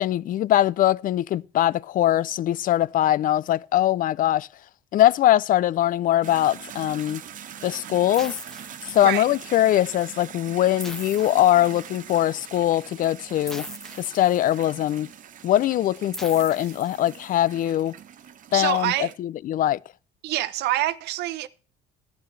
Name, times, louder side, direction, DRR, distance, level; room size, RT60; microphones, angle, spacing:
voice 1, 0.0-4.5 4.9-7.2 7.6-8.4 8.9-13.7 14.0-15.1 15.4-17.9 18.5-19.8, left 13 dB, 55° left, 0.4 m, -22 dB
sound 1, 6.2-19.1, right 9 dB, 50° right, 0.9 m, -43 dB
sound 2, 8.1-9.5 10.8-12.2 13.5-14.8 16.1-17.5, left 1 dB, 5° left, 1.1 m, -41 dB
voice 2, 18.5-19.1 20.2-21.5, right 15 dB, 80° right, 0.7 m, -26 dB
12.0 x 10.5 x 3.3 m
cardioid pair, 110°, 17 cm